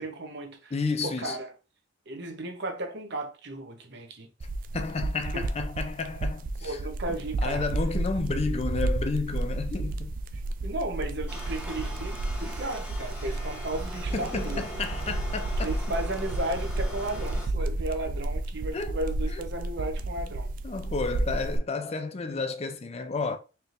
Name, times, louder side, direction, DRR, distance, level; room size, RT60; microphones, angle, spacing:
voice 1, 0.0-0.7 1.0-1.5 2.1-4.3 5.3-5.5 6.6-7.7 10.6-14.6 15.6-20.5, right 2 dB, 65° right, 0.9 m, -34 dB
voice 2, 0.7-1.4 4.7-6.8 7.1-10.1 14.1-15.8 18.7-19.0 19.3-19.4 20.6-23.4, left 4 dB, 35° left, 0.4 m, -31 dB
sound 1, 4.4-21.6, right 2 dB, 50° right, 0.4 m, -32 dB
sound 2, 11.3-17.5, equal, 10° right, 1.7 m, -41 dB
4.4 x 3.4 x 2.5 m
head